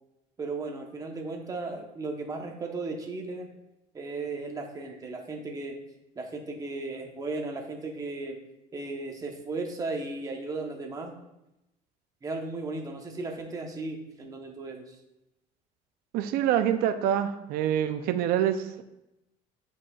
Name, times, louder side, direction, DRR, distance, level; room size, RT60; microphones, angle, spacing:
voice 1, 0.4-3.5 3.9-5.8 6.1-8.4 8.7-11.1 12.2-15.0, right 3 dB, 20° right, 2 dB, 0.9 m, -35 dB
voice 2, 16.1-18.8, right 10 dB, 70° right, 9 dB, 0.5 m, -26 dB
8.6 x 5.2 x 2.3 m, 0.89 s
cardioid pair, 145°, 16 cm